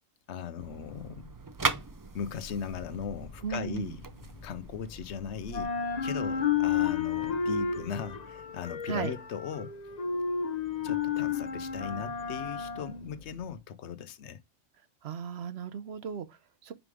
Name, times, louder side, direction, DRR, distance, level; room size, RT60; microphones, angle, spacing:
voice 1, 0.3-1.3 2.1-4.0 4.4-5.7 6.0-9.7 10.8-14.4, left 7 dB, 70° left, 0.9 m, -38 dB
sound 1, 0.6-5.6, right 3 dB, 30° right, 0.3 m, -38 dB
sound 2, 2.3-5.1 5.4-13.6, left 7 dB, 40° left, 0.7 m, -32 dB
voice 2, 3.4-3.9 8.9-9.1 15.0-16.7, right 7 dB, 65° right, 0.9 m, -36 dB
5.1 x 5.0 x 4.8 m
omnidirectional pair, 1.2 m